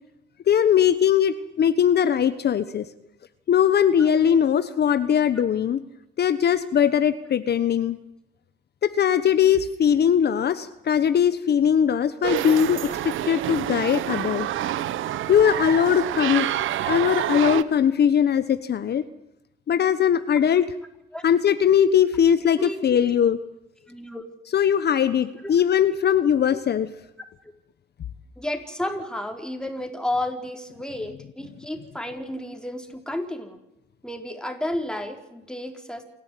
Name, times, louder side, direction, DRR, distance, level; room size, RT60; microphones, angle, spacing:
voice 1, 0.5-2.9 3.5-5.8 6.2-8.0 8.8-14.5 15.3-16.5 16.9-19.0 19.7-20.7 21.2-23.4 24.5-26.9, left 8 dB, 55° left, 12 dB, 1.2 m, -20 dB
sound 1, 12.2-17.6, right 12 dB, 80° right, 1.2 m, -27 dB
voice 2, 23.9-24.2 25.4-25.5 26.5-26.6 28.4-33.6 34.0-36.0, left 1 dB, 5° left, 5 dB, 4.4 m, -32 dB
28.0 x 12.5 x 9.3 m, 0.88 s
cardioid pair, 90°, 20 cm